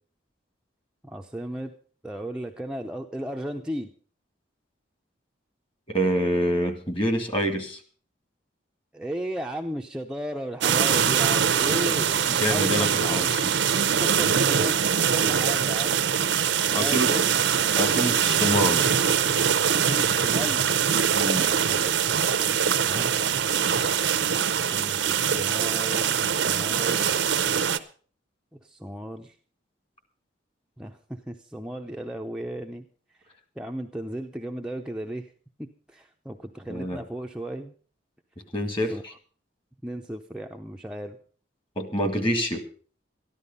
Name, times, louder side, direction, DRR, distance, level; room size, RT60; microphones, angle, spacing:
voice 1, 1.0-1.7 2.0-3.9 8.9-13.0 13.8-14.8 15.1-17.2 19.7-20.6 21.6-23.1 24.5-27.2 28.6-29.4 30.8-32.9 33.6-35.3 35.6-37.7 38.9-39.0 39.8-41.2, equal, 5° right, 2 dB, 0.7 m, -35 dB
voice 2, 5.9-7.8 12.3-13.5 16.7-17.1 17.8-18.9 21.1-21.5 36.7-37.0 38.5-39.1 41.8-42.6, equal, 30° left, 7 dB, 1.9 m, -26 dB
sound 1, 10.6-27.8, right 7 dB, 70° right, 0.8 m, -23 dB
13.5 x 11.5 x 5.4 m, 0.43 s
head